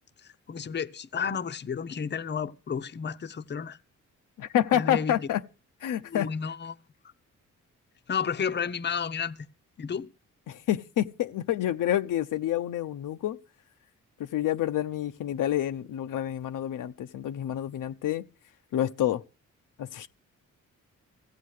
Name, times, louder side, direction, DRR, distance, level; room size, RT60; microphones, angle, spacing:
voice 1, 0.2-3.8 4.7-5.3 6.1-6.8 8.1-9.5 9.8-10.1, left 6 dB, 35° left, 0.7 m, -32 dB
voice 2, 4.4-5.4 5.8-6.3 10.5-13.4 14.2-18.2 18.7-19.2 19.8-20.1, left 11 dB, 80° left, 0.7 m, -28 dB
15.5 x 8.2 x 6.4 m
cardioid pair, 85°, 31 cm